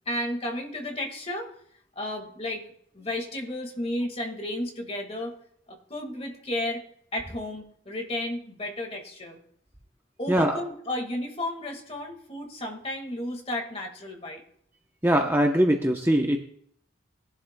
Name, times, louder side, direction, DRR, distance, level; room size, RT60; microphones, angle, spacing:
voice 1, 0.1-1.5 1.9-2.7 2.9-5.3 5.7-6.8 7.1-9.4 10.2-14.4, left 1 dB, 30° left, 3 dB, 1.7 m, -33 dB
voice 2, 10.3-10.6 15.0-16.4, right 1 dB, 10° right, 2 dB, 0.7 m, -22 dB
20.5 x 11.5 x 2.2 m, 0.65 s
head